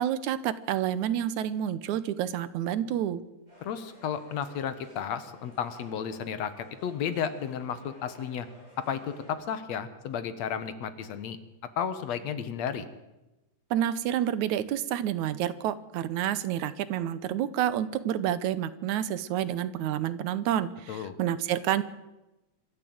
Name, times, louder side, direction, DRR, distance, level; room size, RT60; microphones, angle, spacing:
voice 1, 0.0-3.2 13.7-21.8, right 11 dB, 85° right, 15 dB, 2.4 m, -29 dB
sound 1, 3.5-9.4, equal, 15° right, 8.1 m, -54 dB
voice 2, 3.6-8.5 8.8-11.4 11.8-12.9 20.9-21.1, left 8 dB, 70° left, 12 dB, 2.5 m, -33 dB
26.0 x 13.0 x 7.9 m, 1.0 s
omnidirectional pair, 3.3 m